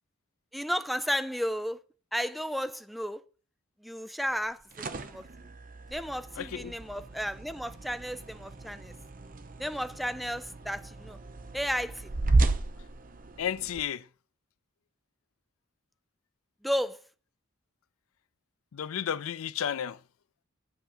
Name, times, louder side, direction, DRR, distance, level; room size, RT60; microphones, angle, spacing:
voice 1, 0.5-1.8 2.1-3.2 3.8-5.2 5.9-8.9 9.6-11.2 11.5-12.1 16.6-17.0, equal, ahead, 0.4 m, -33 dB
sound 1, 4.4-13.8, right 2 dB, 40° right, 0.7 m, -33 dB
voice 2, 6.4-6.7 13.4-14.0 18.7-20.0, left 9 dB, 90° left, 0.4 m, -32 dB
8.0 x 7.8 x 4.3 m
head